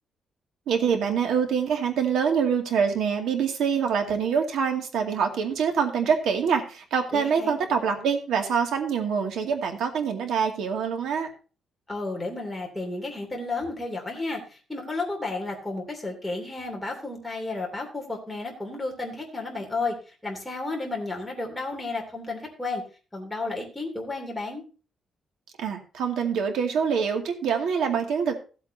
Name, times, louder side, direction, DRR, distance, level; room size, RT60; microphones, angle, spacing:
voice 1, 0.7-11.3 25.6-28.4, right 6 dB, 90° right, 4 dB, 2.2 m, -25 dB
voice 2, 7.1-7.6 11.9-20.0 20.2-22.8 23.1-24.6, left 3 dB, 5° left, 0 dB, 2.8 m, -32 dB
16.0 x 8.2 x 2.8 m, 0.35 s
cardioid pair, 175°, 0 cm